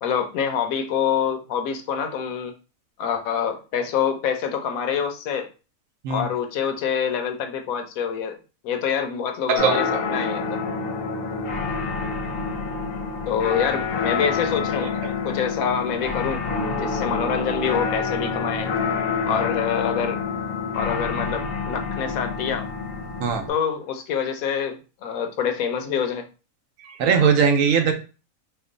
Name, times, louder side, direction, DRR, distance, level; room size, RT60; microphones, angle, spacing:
voice 1, 0.0-2.5 3.0-5.5 6.1-8.4 8.6-9.8 10.1-10.6 13.3-14.9 15.2-16.4 16.7-18.7 19.3-20.2 20.7-22.7 23.5-26.2, left 7 dB, 85° left, 6 dB, 1.0 m, -26 dB
voice 2, 9.5-9.8 15.0-15.1 17.0-17.1 19.2-19.4 23.2-23.5 26.8-27.9, right 6 dB, 75° right, 6 dB, 1.0 m, -20 dB
sound 1, 9.6-23.5, left 5 dB, 55° left, 0.8 m, -27 dB
3.0 x 2.2 x 3.7 m, 0.33 s
omnidirectional pair, 1.4 m